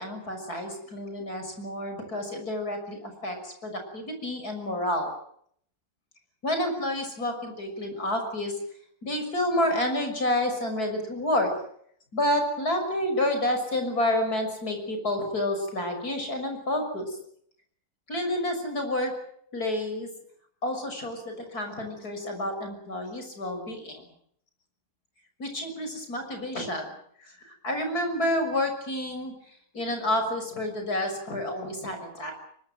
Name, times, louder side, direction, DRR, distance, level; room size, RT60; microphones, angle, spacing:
voice 1, 0.0-5.1 6.4-8.5 9.0-11.5 12.1-17.2 18.1-19.1 19.5-20.1 20.6-24.1 25.4-26.9 27.2-29.3 29.7-32.3, left 1 dB, 70° left, 5 dB, 6.8 m, -29 dB
24.0 x 22.0 x 7.7 m, 0.65 s
omnidirectional pair, 1.7 m